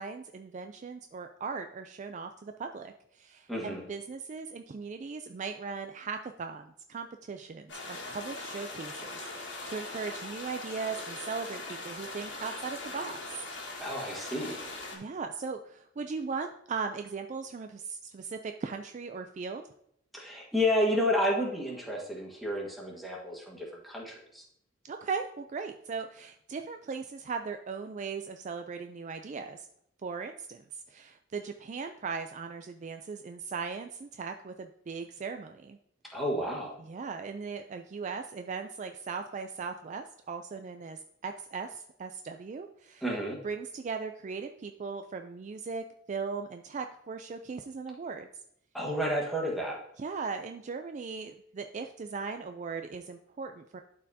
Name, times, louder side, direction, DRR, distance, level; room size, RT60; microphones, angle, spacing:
voice 1, 0.0-13.4 14.9-19.6 24.8-29.7 30.0-35.8 36.8-43.0 43.4-48.3 50.0-53.8, right 5 dB, 40° right, 6 dB, 0.3 m, -38 dB
voice 2, 3.5-3.9 13.8-14.5 20.1-24.4 36.1-36.8 43.0-43.4 48.7-49.8, equal, ahead, -3 dB, 1.5 m, -31 dB
sound 1, 7.7-15.0, left 2 dB, 60° left, 1.7 m, -41 dB
11.5 x 4.4 x 2.7 m, 0.73 s
head